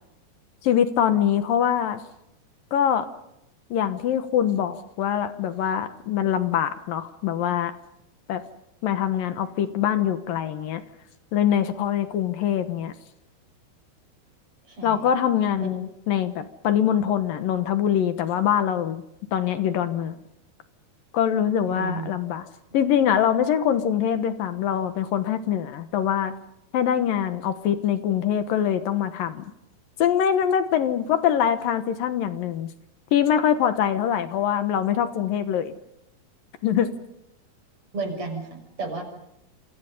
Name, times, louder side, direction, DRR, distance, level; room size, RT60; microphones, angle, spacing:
voice 1, 0.6-2.0 2.7-3.1 3.7-7.7 8.3-8.4 8.8-10.8 11.3-12.9 14.8-19.0 19.3-20.2 21.1-22.5 22.7-26.3 26.7-29.4 30.0-32.7 33.1-35.7 36.6-36.9, left 9 dB, 70° left, 10 dB, 2.8 m, -23 dB
voice 2, 14.7-15.1 15.6-15.7 21.7-22.1 37.9-39.0, right 3 dB, 35° right, 3 dB, 7.1 m, -32 dB
28.0 x 26.0 x 5.5 m, 0.83 s
omnidirectional pair, 4.6 m